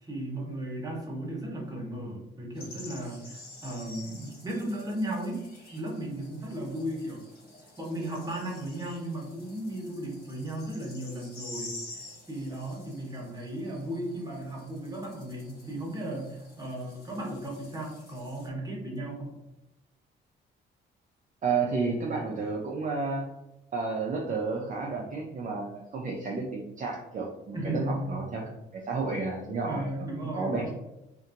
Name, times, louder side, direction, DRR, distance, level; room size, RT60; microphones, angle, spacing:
voice 1, 0.0-5.4 5.7-7.2 7.8-19.4 27.5-28.1 29.7-30.7, right 1 dB, 20° right, -2 dB, 1.0 m, -35 dB
sound 1, 2.5-18.5, left 2 dB, 50° left, 1.1 m, -49 dB
voice 2, 21.4-23.3 23.7-29.8 30.3-30.7, right 4 dB, 40° right, -1 dB, 0.5 m, -31 dB
2.8 x 2.5 x 2.5 m, 0.94 s
cardioid pair, 90°, 20 cm